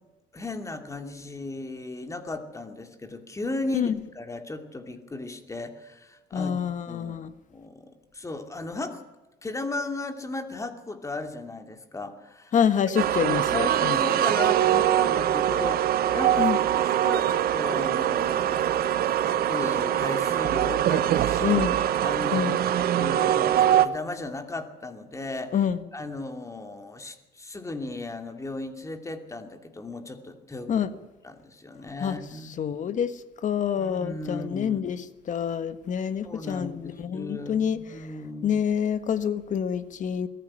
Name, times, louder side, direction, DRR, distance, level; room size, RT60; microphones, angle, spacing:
voice 1, 0.3-6.5 6.9-7.2 7.5-9.0 9.4-12.5 13.5-18.9 19.2-21.6 22.0-25.6 25.9-30.9 31.2-32.5 33.8-34.9 36.2-38.6, left 2 dB, 20° left, 7 dB, 2.6 m, -36 dB
voice 2, 6.3-7.3 12.5-14.0 16.4-16.6 21.4-21.7 22.3-22.6 25.5-25.8 30.7-30.9 32.0-32.2 32.6-33.1 33.4-37.8 38.4-40.3, left 8 dB, 50° left, 12 dB, 1.5 m, -27 dB
sound 1, 13.0-23.9, right 11 dB, 65° right, 1.2 m, -23 dB
22.0 x 14.5 x 10.0 m, 1.1 s
cardioid pair, 110°, 17 cm